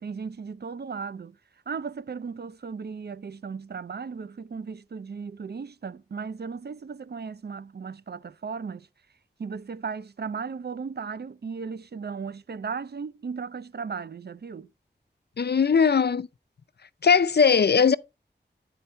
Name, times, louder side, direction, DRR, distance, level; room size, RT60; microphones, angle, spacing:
voice 1, 0.0-1.4 1.7-8.9 9.4-14.7, right 5 dB, 60° right, 0.4 m, -36 dB
voice 2, 15.4-16.3 17.0-18.0, left 6 dB, 60° left, 0.4 m, -19 dB
9.5 x 4.5 x 4.2 m
wide cardioid pair, 45°, 19 cm